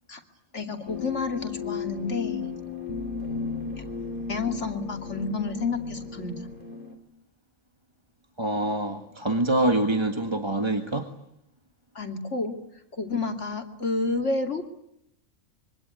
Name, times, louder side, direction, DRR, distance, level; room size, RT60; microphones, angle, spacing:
voice 1, 0.5-2.4 4.3-6.3 11.9-12.6 13.0-14.6, left 3 dB, 65° left, 5 dB, 3.0 m, -30 dB
sound 1, 0.9-6.9, left 5 dB, 40° left, 4.0 m, -35 dB
voice 2, 8.4-11.1, right 1 dB, 20° right, 5 dB, 1.7 m, -25 dB
26.0 x 24.0 x 9.6 m, 0.79 s
omnidirectional pair, 1.3 m